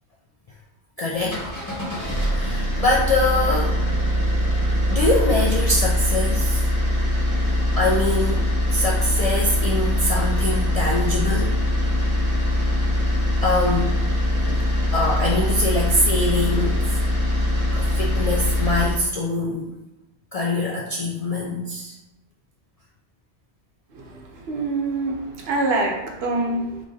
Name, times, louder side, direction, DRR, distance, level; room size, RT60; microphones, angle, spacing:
voice 1, 1.0-1.4 2.4-3.8 4.9-6.7 7.7-8.4 8.7-11.6 13.4-14.0 14.5-14.6 14.9-16.9 17.7-19.7 20.3-22.0, left 2 dB, 55° left, -3 dB, 0.4 m, -23 dB
sound 1, 1.1-19.0, left 1 dB, 20° left, 1.3 m, -22 dB
voice 2, 24.5-26.8, right 2 dB, 70° right, 0 dB, 0.9 m, -25 dB
3.1 x 2.5 x 3.9 m, 0.97 s
omnidirectional pair, 1.1 m